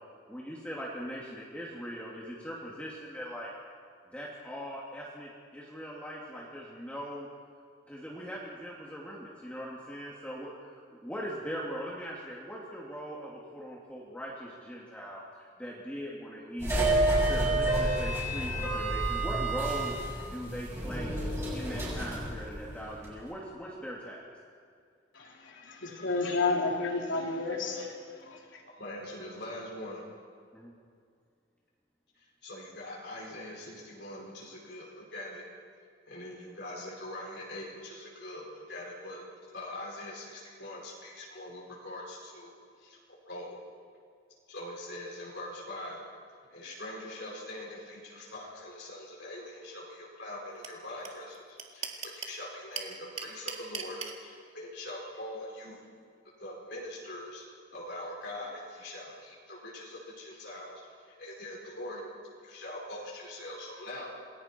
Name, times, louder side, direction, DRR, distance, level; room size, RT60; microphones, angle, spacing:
voice 1, 0.3-3.5 4.1-7.3 7.9-16.9 17.2-21.1 21.5-24.3 30.5-30.7, equal, 5° left, -5 dB, 2.5 m, -40 dB
sound 1, 16.6-23.1, right 1 dB, 15° right, 7.0 m, -30 dB
voice 2, 25.1-28.0 28.2-28.6, left 3 dB, 80° left, 0 dB, 3.2 m, -31 dB
voice 3, 28.7-30.0 32.1-35.5 36.1-39.3 39.5-43.6 44.5-46.1 46.5-55.9 56.4-57.5 57.7-62.0 62.4-64.1, left 1 dB, 60° left, -3 dB, 5.2 m, -43 dB
sound 2, 50.6-50.7 51.0-51.1 51.3-52.4 52.7-54.1, right 6 dB, 35° right, 1.8 m, -36 dB
27.5 x 21.0 x 4.5 m, 2.2 s
head